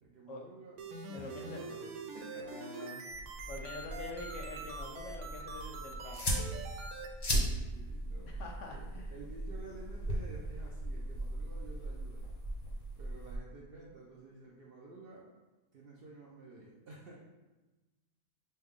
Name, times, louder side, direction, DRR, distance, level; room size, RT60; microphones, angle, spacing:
voice 1, 0.0-3.1 7.7-8.4 8.7-12.3 13.0-15.3 15.7-17.2, right 3 dB, 55° right, -3 dB, 0.6 m, -52 dB
sound 1, 0.8-7.1, right 3 dB, 90° right, 1.1 m, -44 dB
voice 2, 1.1-1.6 2.4-3.0 3.5-6.3 8.3-9.1, left 2 dB, 70° left, 1 dB, 0.8 m, -46 dB
sound 2, 3.1-13.4, right 1 dB, 35° left, 0.7 m, -38 dB
5.4 x 2.3 x 3.5 m, 1.1 s
omnidirectional pair, 1.5 m